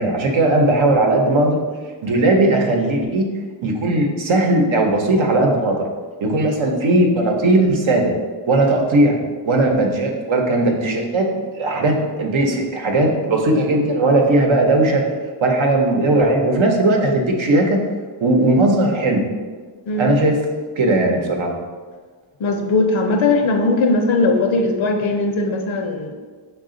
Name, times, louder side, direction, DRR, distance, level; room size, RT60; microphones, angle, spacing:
voice 1, 0.0-1.6 2.0-3.3 3.6-5.8 6.2-8.1 8.5-9.2 9.4-11.3 11.5-15.0 15.4-17.8 18.2-19.2 20.0-20.4 20.8-21.5, right 2 dB, 75° right, 1 dB, 0.8 m, -17 dB
voice 2, 22.4-26.2, left 3 dB, 75° left, 4 dB, 0.7 m, -19 dB
5.7 x 2.4 x 3.7 m, 1.4 s
wide cardioid pair, 130°, 48 cm